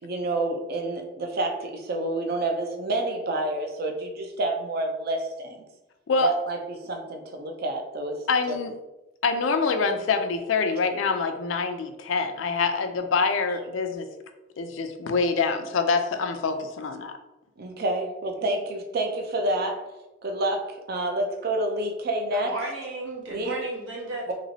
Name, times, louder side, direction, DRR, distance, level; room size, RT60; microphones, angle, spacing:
voice 1, 0.0-5.6 6.2-8.6 17.6-19.8 20.2-22.5 23.3-23.5, right 2 dB, 55° right, 4 dB, 0.5 m, -28 dB
voice 2, 8.3-8.7 9.2-14.1 14.6-17.2, left 4 dB, 80° left, 7 dB, 0.4 m, -25 dB
voice 3, 22.4-24.3, right 2 dB, 75° right, -4 dB, 1.1 m, -34 dB
3.0 x 2.9 x 2.7 m, 1.0 s
head